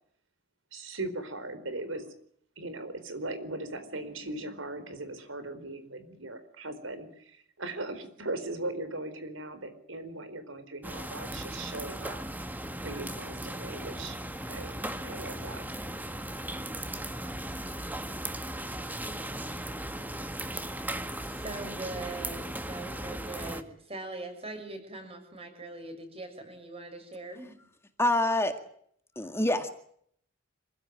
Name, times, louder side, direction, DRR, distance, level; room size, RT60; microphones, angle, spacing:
voice 1, 0.7-2.0 2.6-12.2 12.8-14.2 14.5-14.7 15.0-15.6, right 2 dB, 85° right, 11 dB, 4.6 m, -39 dB
sound 1, 10.8-23.6, right 1 dB, 10° right, 1.7 m, -37 dB
voice 2, 21.2-27.5, right 2 dB, 30° right, 7 dB, 6.6 m, -41 dB
voice 3, 28.0-28.6 29.2-29.7, left 1 dB, 15° left, 7 dB, 2.0 m, -26 dB
26.5 x 16.0 x 9.2 m, 0.66 s
head